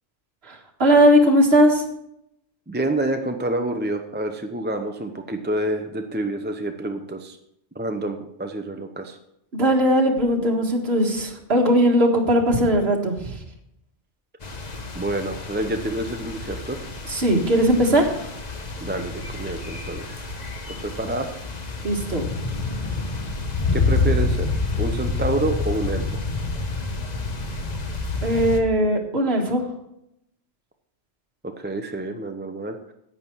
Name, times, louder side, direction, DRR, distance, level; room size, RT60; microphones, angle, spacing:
voice 1, 0.4-1.8 9.5-13.4 17.1-18.3 21.8-22.3 28.2-29.7, equal, 65° right, 0 dB, 1.9 m, -19 dB
voice 2, 2.7-7.4 7.8-9.2 14.9-16.8 18.8-20.3 20.8-21.3 23.7-24.5 24.8-26.2 31.6-32.9, right 1 dB, 10° right, 5 dB, 0.5 m, -28 dB
sound 1, 14.4-28.6, left 3 dB, 40° left, 1.1 m, -28 dB
11.0 x 8.4 x 4.6 m, 0.79 s
omnidirectional pair, 1.2 m